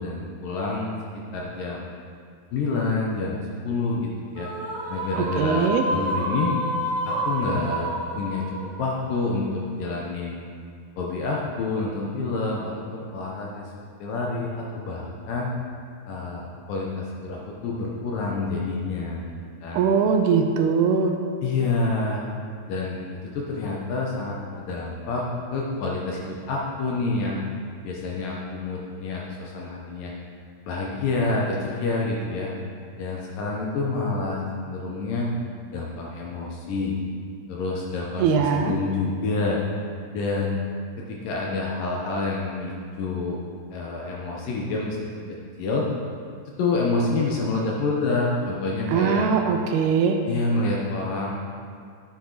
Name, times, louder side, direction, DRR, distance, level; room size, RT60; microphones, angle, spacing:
voice 1, 0.0-1.8 2.5-4.5 4.9-6.6 7.1-10.4 11.0-13.7 14.0-15.5 16.1-19.3 19.6-19.8 21.4-22.3 22.7-23.1 23.3-27.4 27.8-30.1 30.7-32.5 33.0-35.3 35.7-37.0 37.5-39.6 40.1-40.6 41.1-43.4 43.7-45.9 46.6-49.3 50.3-51.4, left 3 dB, 70° left, -2 dB, 2.3 m, -28 dB
sound 1, 4.4-9.8, right 1 dB, 55° right, 2.5 m, -29 dB
voice 2, 5.2-5.8 19.7-21.1 38.2-38.7 48.9-50.2, right 6 dB, 80° right, 5 dB, 2.5 m, -21 dB
10.5 x 8.4 x 3.9 m, 2.2 s
omnidirectional pair, 4.8 m